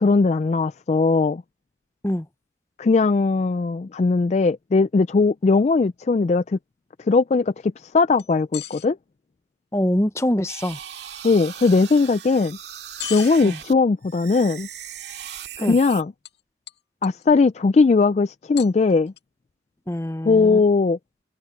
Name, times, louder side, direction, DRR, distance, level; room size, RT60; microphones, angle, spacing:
voice 1, 0.0-1.4 2.8-6.6 7.0-9.0 11.2-12.6 13.1-14.7 15.6-16.1 17.0-19.1 20.2-21.0, left 4 dB, 35° left, 0.3 m, -19 dB
sound 1, 8.2-8.9 11.6-11.8 13.0-13.3 15.9-16.0 16.3-16.4 16.7-17.3 18.6-19.2, left 10 dB, 60° left, 2.2 m, -35 dB
voice 2, 9.7-10.8 13.4-13.6 15.6-15.8 19.9-20.6, left 1 dB, 15° left, 0.7 m, -24 dB
sound 2, 10.5-13.7 14.0-16.0, right 10 dB, 70° right, 2.1 m, -38 dB
head